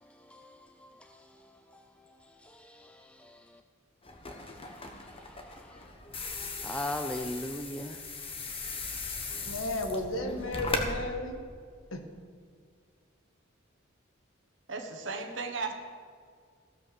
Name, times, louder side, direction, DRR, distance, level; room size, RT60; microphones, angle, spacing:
voice 1, 0.0-3.6 4.5-5.9 6.6-8.0, left 1 dB, 5° left, 0.4 m, -41 dB
sound 1, 4.0-10.9, left 3 dB, 25° left, 1.2 m, -38 dB
voice 2, 9.5-11.4 11.9-12.0, left 2 dB, 75° left, 1.4 m, -33 dB
voice 3, 14.7-15.7, right 4 dB, 60° right, 1.2 m, -35 dB
15.5 x 5.8 x 6.9 m
head